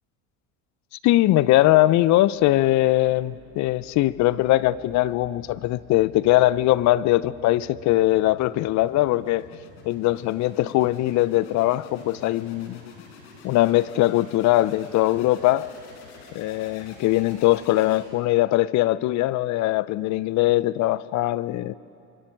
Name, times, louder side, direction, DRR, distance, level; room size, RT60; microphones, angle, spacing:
voice 1, 1.0-9.4 9.9-12.8 13.4-15.7 16.3-21.7, left 16 dB, 55° left, 18 dB, 0.7 m, -21 dB
sound 1, 2.3-18.4, left 4 dB, 80° left, 4.8 m, -48 dB
29.5 x 24.0 x 4.6 m, 2.7 s
supercardioid pair, 90°, 35 cm